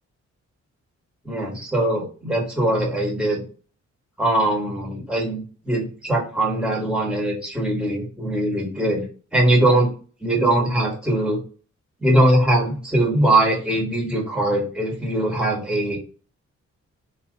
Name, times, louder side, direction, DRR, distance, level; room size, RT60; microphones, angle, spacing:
voice 1, 1.2-3.4 4.2-9.1 9.3-9.9 10.2-11.4 12.0-16.0, right 1 dB, 5° right, -2 dB, 1.5 m, -21 dB
4.0 x 2.8 x 3.9 m, 0.37 s
wide cardioid pair, 120°, 29 cm